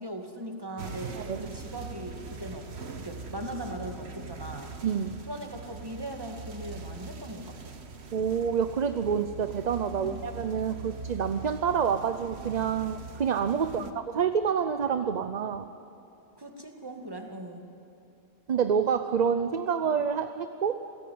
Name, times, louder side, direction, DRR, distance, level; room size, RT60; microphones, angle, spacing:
voice 1, 0.0-1.1 1.4-2.7 3.0-4.7 5.3-7.8 9.9-10.3 13.6-14.0 16.4-17.6, right 1 dB, 20° right, 3 dB, 2.2 m, -39 dB
sound 1, 0.8-13.9, right 4 dB, 80° right, 1.6 m, -42 dB
voice 2, 4.8-5.2 8.1-15.7 18.5-20.8, right 7 dB, 45° right, 10 dB, 0.7 m, -28 dB
28.0 x 16.5 x 9.5 m, 2.7 s
omnidirectional pair, 1.1 m